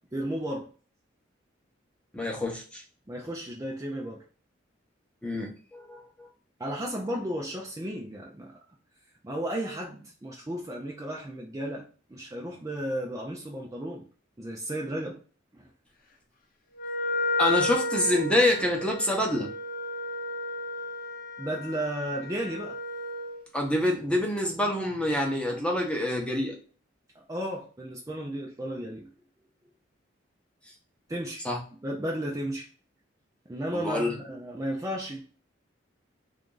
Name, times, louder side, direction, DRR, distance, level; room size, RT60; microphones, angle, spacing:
voice 1, 0.1-0.7 3.1-4.2 6.6-8.6 9.2-14.0 14.4-15.2 15.5-15.7 21.4-22.8 27.2-29.1 31.1-31.5 31.8-32.7 33.5-35.2, right 1 dB, 15° right, -1 dB, 0.5 m, -34 dB
voice 2, 2.1-2.8 5.2-6.3 17.4-19.5 23.5-26.6 31.4-31.6 33.7-34.2, left 1 dB, 5° left, 1 dB, 0.8 m, -27 dB
Wind instrument woodwind instrument, 16.8-23.4, left 2 dB, 50° left, 0.8 m, -32 dB
3.5 x 2.5 x 3.8 m, 0.40 s
head